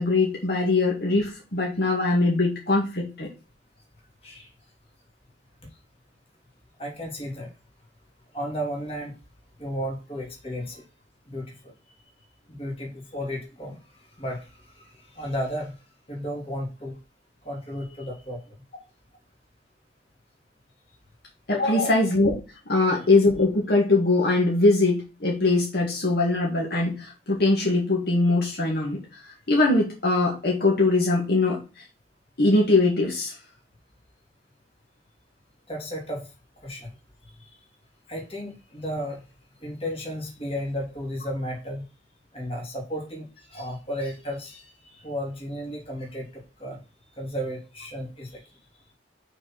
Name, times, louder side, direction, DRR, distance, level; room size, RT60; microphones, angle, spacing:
voice 1, 0.0-3.3 21.5-22.3 22.7-31.8 32.4-33.4, left 2 dB, 55° left, -2 dB, 1.9 m, -22 dB
voice 2, 6.8-7.5 8.3-9.1 9.6-10.8 11.3-11.7 12.5-13.8 14.2-14.5 14.7-15.7 16.1-17.0 17.4-18.4 21.7-21.9 35.7-36.3 36.6-36.9 37.4-37.6 38.1-39.2 39.6-41.8 42.3-46.8 47.2-48.4, equal, 30° left, 0 dB, 2.8 m, -33 dB
6.1 x 4.6 x 5.9 m, 0.31 s
head